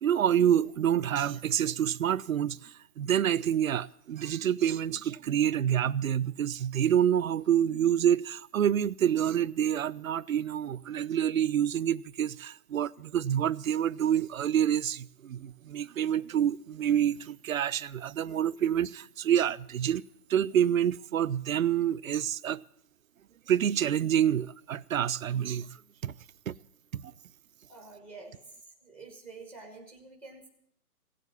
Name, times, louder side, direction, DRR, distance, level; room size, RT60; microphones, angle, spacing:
voice 1, 0.0-20.0 20.3-22.6 23.5-25.8 26.0-26.1 26.5-26.6 26.9-27.1, right 10 dB, 60° right, 0.6 m, -27 dB
voice 2, 27.7-28.3 28.8-30.5, right 3 dB, 5° left, 1.1 m, -48 dB
17.0 x 7.5 x 9.4 m
hypercardioid pair, 160°, 46 cm